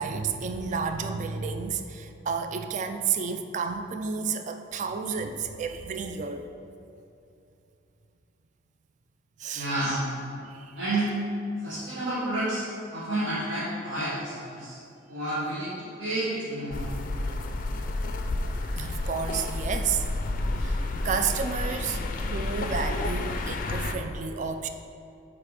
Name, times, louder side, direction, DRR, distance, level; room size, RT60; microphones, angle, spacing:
voice 1, 0.0-6.5 9.4-9.7 10.5-10.7 18.8-20.1 20.6-24.7, right 5 dB, 40° right, 7 dB, 0.3 m, -31 dB
voice 2, 9.5-10.0 10.8-11.1 11.6-12.6 12.9-14.8 15.1-16.8, right 1 dB, 65° right, -10 dB, 1.3 m, -30 dB
sound 1, 16.7-23.9, left 2 dB, 45° left, 0.4 m, -30 dB
7.6 x 2.9 x 5.0 m, 2.6 s
head